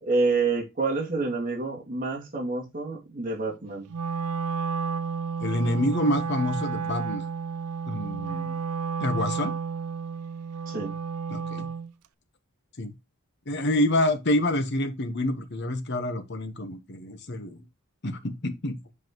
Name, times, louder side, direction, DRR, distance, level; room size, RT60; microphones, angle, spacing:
voice 1, 0.0-3.9 10.7-10.9, right 3 dB, 40° right, 2.5 m, -28 dB
Wind instrument woodwind instrument, 3.9-11.9, right 5 dB, 85° right, 0.5 m, -31 dB
voice 2, 5.4-7.2 7.9-8.6 9.0-9.5 11.3-11.7 12.8-12.9 13.5-17.6 18.0-18.8, left 1 dB, 50° left, 1.1 m, -27 dB
7.8 x 5.6 x 3.0 m
head